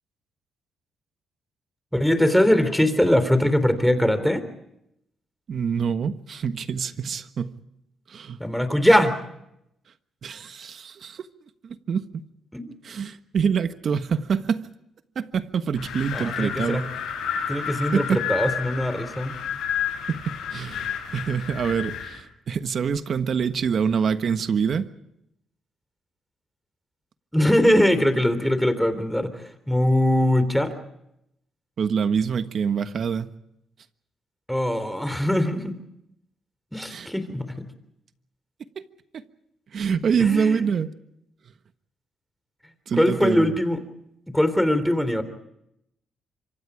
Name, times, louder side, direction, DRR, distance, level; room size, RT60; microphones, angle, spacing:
voice 1, 1.9-4.4 8.4-9.1 12.5-12.7 16.1-16.8 17.5-19.3 27.3-29.3 29.7-30.7 34.5-35.7 36.7-37.6 40.2-40.6 42.9-43.8 44.3-45.2, left 1 dB, ahead, 3.5 m, -21 dB
voice 2, 5.5-7.5 8.1-8.4 10.2-11.3 11.6-12.0 12.8-14.7 15.1-16.9 17.9-18.2 20.1-24.9 31.8-33.3 36.9-37.1 38.8-38.9 39.1-39.2 39.7-40.9 42.9-43.5, right 6 dB, 55° right, 1.3 m, -25 dB
Wind, 15.7-22.2, left 8 dB, 80° left, 6.9 m, -31 dB
26.5 x 25.0 x 5.0 m
cardioid pair, 90°, 0 cm